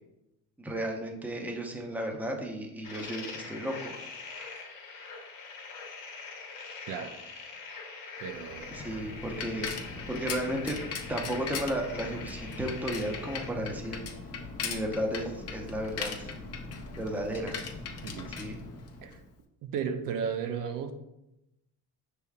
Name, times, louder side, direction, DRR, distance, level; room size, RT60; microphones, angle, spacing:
voice 1, 0.6-4.0 8.7-9.7 10.1-10.8 11.1-14.0 14.6-16.3 17.0-17.6 18.3-18.6, equal, 5° right, 1 dB, 0.6 m, -34 dB
sound 1, 2.8-13.5, left 4 dB, 60° left, 1.1 m, -44 dB
voice 2, 8.2-8.7 18.0-18.3 19.0-19.2 19.6-20.9, right 7 dB, 65° right, 6 dB, 0.5 m, -34 dB
Bicycle, 8.4-19.3, left 4 dB, 45° left, 0.7 m, -39 dB
5.4 x 3.4 x 2.3 m, 0.89 s
cardioid pair, 105°, 35 cm